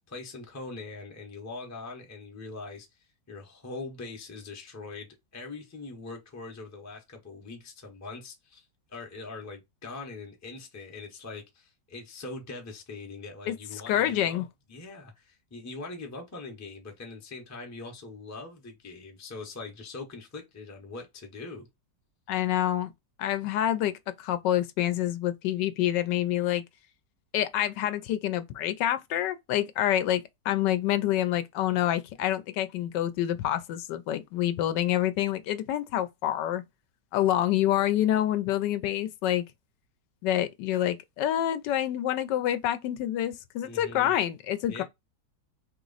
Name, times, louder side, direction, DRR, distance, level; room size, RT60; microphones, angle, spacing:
voice 1, 0.1-3.0 3.3-14.4 14.7-21.7 43.6-44.2 44.7-44.8, left 3 dB, 15° left, 0.5 m, -42 dB
voice 2, 13.9-14.5 22.3-22.9 23.2-26.6 27.3-36.6 37.1-39.4 40.2-44.8, left 12 dB, 80° left, 1.2 m, -27 dB
3.1 x 3.0 x 3.9 m
omnidirectional pair, 1.9 m